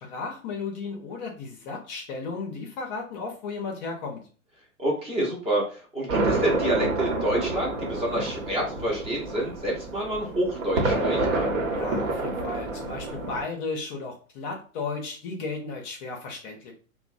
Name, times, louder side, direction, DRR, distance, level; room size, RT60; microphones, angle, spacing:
voice 1, 0.0-4.2 11.7-16.7, left 4 dB, 35° left, 1 dB, 0.5 m, -34 dB
voice 2, 4.8-11.3, right 1 dB, 15° right, -3 dB, 0.6 m, -28 dB
sound 1, 6.1-13.4, right 2 dB, 65° right, 1.0 m, -28 dB
2.9 x 2.1 x 2.5 m, 0.39 s
hypercardioid pair, 120°, 42 cm